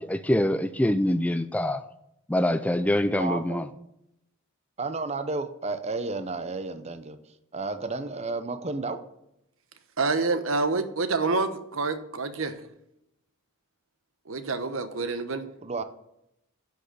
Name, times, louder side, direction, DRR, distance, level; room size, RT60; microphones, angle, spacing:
voice 1, 0.0-1.8 2.3-3.7, left 1 dB, 5° left, 12 dB, 0.3 m, -25 dB
voice 2, 3.2-3.6 4.8-7.2 7.5-9.0 15.6-15.8, right 3 dB, 30° right, 10 dB, 0.7 m, -32 dB
voice 3, 10.0-12.5 14.3-15.5, right 3 dB, 70° right, 10 dB, 1.1 m, -27 dB
10.5 x 6.3 x 6.9 m, 0.81 s
head